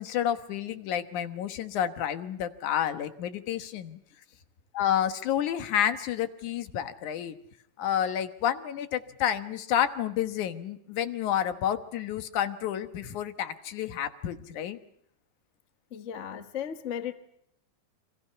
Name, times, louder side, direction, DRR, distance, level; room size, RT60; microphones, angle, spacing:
voice 1, 0.0-4.0 4.7-7.4 7.8-14.8, left 10 dB, 85° left, 9 dB, 2.8 m, -30 dB
voice 2, 15.9-17.1, left 9 dB, 55° left, 9 dB, 0.8 m, -35 dB
29.5 x 24.5 x 5.7 m, 0.72 s
omnidirectional pair, 3.4 m